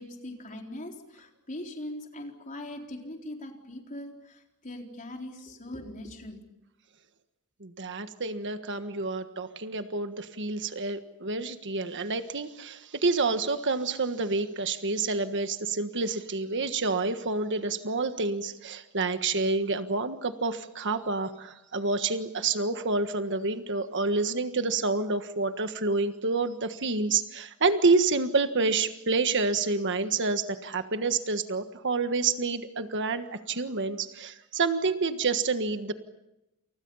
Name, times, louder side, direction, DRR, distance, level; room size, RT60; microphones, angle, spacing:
voice 1, 0.0-6.4, left 1 dB, 35° left, 2 dB, 4.2 m, -41 dB
voice 2, 7.6-35.9, right 3 dB, 55° right, 9 dB, 1.5 m, -28 dB
29.0 x 29.0 x 5.6 m, 0.91 s
head